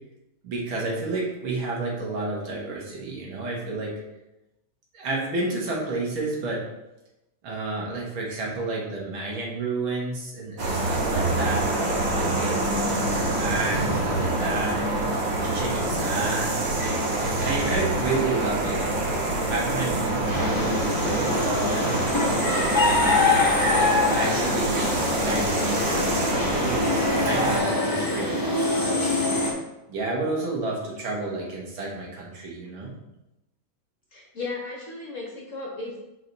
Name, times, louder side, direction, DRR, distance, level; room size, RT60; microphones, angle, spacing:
voice 1, 0.4-3.9 4.9-6.6 7.4-11.7 12.2-15.0 15.4-16.5 17.2-23.3 24.1-29.1 29.9-32.9, right 3 dB, 85° right, -3 dB, 2.3 m, -31 dB
sound 1, 10.6-27.6, right 2 dB, 65° right, 2.0 m, -26 dB
sound 2, 20.3-29.5, left 2 dB, 20° left, 0.5 m, -24 dB
voice 2, 34.1-36.0, left 3 dB, 45° left, -1 dB, 1.2 m, -35 dB
5.0 x 4.8 x 4.0 m, 0.94 s
omnidirectional pair, 2.2 m